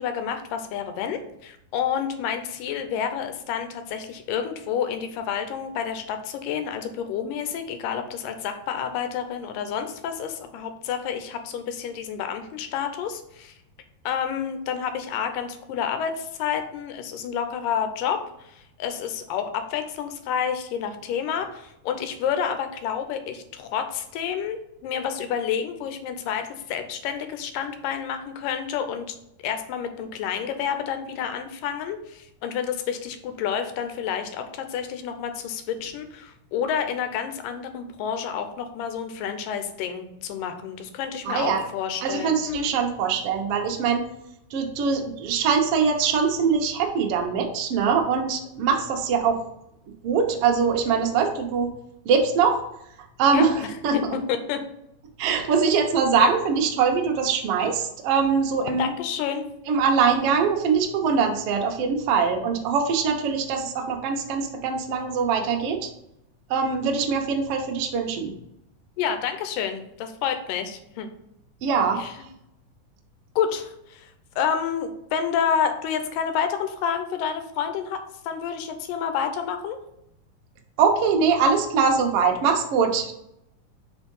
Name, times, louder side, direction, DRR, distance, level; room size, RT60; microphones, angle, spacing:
voice 1, 0.0-13.5 14.1-29.2 29.4-42.7 53.3-53.5 53.9-54.0 54.3-54.6 58.8-59.4 69.0-71.1 72.0-72.1 73.4-74.1 74.4-78.0 78.2-79.8, left 8 dB, 80° left, 7 dB, 2.3 m, -29 dB
voice 2, 41.2-41.6 42.0-44.0 44.5-49.4 50.0-51.7 52.0-52.6 53.2-53.9 55.2-58.9 59.7-65.9 66.5-68.3 71.6-72.0 80.8-83.2, right 5 dB, 80° right, 2 dB, 1.3 m, -22 dB
5.0 x 4.5 x 5.3 m, 0.79 s
omnidirectional pair, 4.0 m